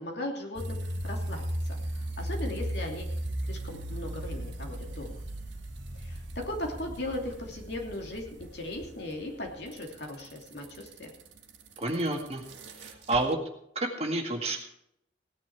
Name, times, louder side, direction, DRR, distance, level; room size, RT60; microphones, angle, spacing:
voice 1, 0.0-1.4 1.9-3.1 3.5-5.2 5.9-11.1, left 1 dB, 60° left, 1 dB, 2.8 m, -38 dB
sound 1, 0.6-13.3, right 1 dB, 80° right, 1.6 m, -37 dB
voice 2, 11.8-12.4 12.7-13.4 13.8-14.6, right 2 dB, 35° right, 2 dB, 2.0 m, -29 dB
17.0 x 10.0 x 4.8 m, 0.76 s
head